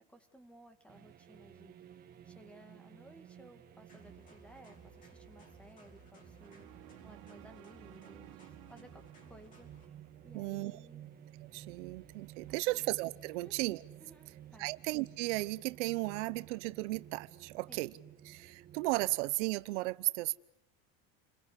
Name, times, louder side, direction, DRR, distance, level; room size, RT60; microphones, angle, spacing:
voice 1, 0.0-1.8 2.2-11.1 12.5-12.8 13.3-13.5 14.0-14.7 17.7-17.8, equal, 5° left, 9 dB, 2.2 m, -58 dB
sound 1, 0.9-19.3, right 11 dB, 25° right, 1.6 m, -55 dB
sound 2, 3.9-9.9, right 2 dB, 25° left, 5.1 m, -59 dB
sound 3, 6.4-10.6, right 19 dB, 55° right, 1.2 m, -56 dB
voice 2, 10.3-10.8 11.5-13.8 14.6-17.9 18.2-20.4, right 21 dB, 90° right, 16 dB, 1.0 m, -35 dB
29.0 x 22.0 x 8.3 m, 0.81 s
cardioid pair, 165°, 35 cm